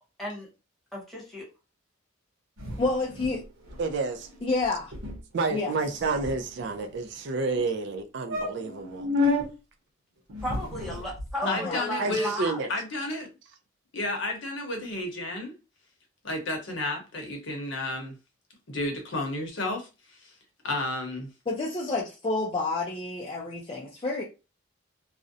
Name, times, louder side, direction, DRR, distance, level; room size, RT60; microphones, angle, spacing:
voice 1, 0.9-1.4 10.4-12.6, equal, ahead, 1.0 m, -34 dB
sound 1, 2.6-3.4 3.7-3.8 4.1-4.3 4.6-4.7 4.9-5.2 5.8-6.8 7.5-7.6 7.9-8.0 8.3-9.5 10.3-11.3, left 3 dB, 85° right, 0.9 m, -31 dB
voice 2, 2.8-3.4 4.4-4.9 5.5-5.7 11.4-11.8 21.5-24.2, left 3 dB, 25° left, 0.4 m, -29 dB
voice 3, 3.8-4.3 5.3-9.1 12.0-12.7, right 3 dB, 60° right, 0.4 m, -30 dB
voice 4, 11.4-12.3 12.7-13.3 13.9-15.5 16.2-18.2 18.7-20.3 20.6-21.3, left 2 dB, 65° left, 0.8 m, -32 dB
2.4 x 2.0 x 2.6 m
head